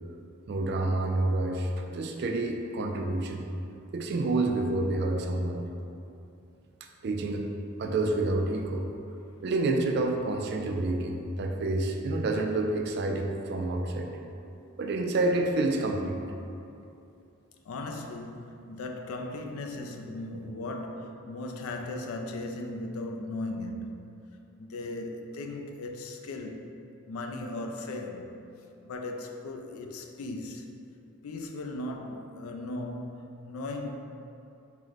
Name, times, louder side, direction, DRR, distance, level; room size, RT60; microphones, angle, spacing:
voice 1, 0.5-3.5 3.9-5.7 7.0-7.4 7.8-8.9 9.4-14.1 14.8-16.2, right 2 dB, 50° right, 3 dB, 0.3 m, -28 dB
voice 2, 17.7-24.0 24.6-26.7 27.1-28.3 28.8-30.7 31.2-33.9, left 2 dB, 85° left, 3 dB, 0.4 m, -37 dB
4.5 x 2.1 x 3.9 m, 2.7 s
head